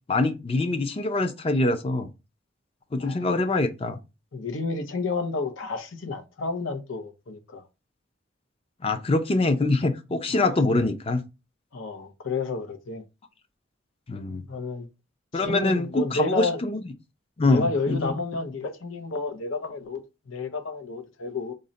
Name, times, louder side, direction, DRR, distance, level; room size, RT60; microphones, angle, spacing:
voice 1, 0.1-2.1 2.9-4.0 8.8-11.2 14.1-14.4 15.3-16.8 17.4-18.1, left 2 dB, 30° left, 0.4 m, -24 dB
voice 2, 3.0-3.3 4.3-7.6 10.3-10.5 11.7-13.0 14.5-14.9 15.3-16.6 17.4-21.5, left 3 dB, 85° left, 0.7 m, -31 dB
3.8 x 2.1 x 3.9 m
head